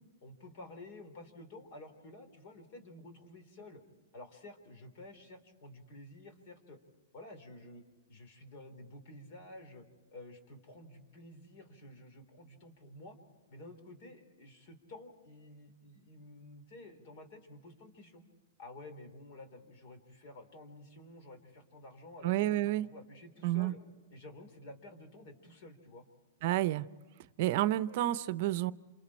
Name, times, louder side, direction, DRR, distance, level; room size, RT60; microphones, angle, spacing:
voice 1, 0.2-3.8 4.1-6.8 7.1-7.8 8.1-9.9 10.1-13.2 13.5-18.2 18.6-23.8 24.1-26.0, left 1 dB, 50° left, 8 dB, 4.0 m, -51 dB
voice 2, 22.2-22.9 23.4-23.7 26.4-26.9 27.4-28.7, right 15 dB, 55° right, 16 dB, 0.7 m, -30 dB
29.0 x 27.0 x 4.4 m, 1.3 s
hypercardioid pair, 125°, 0 cm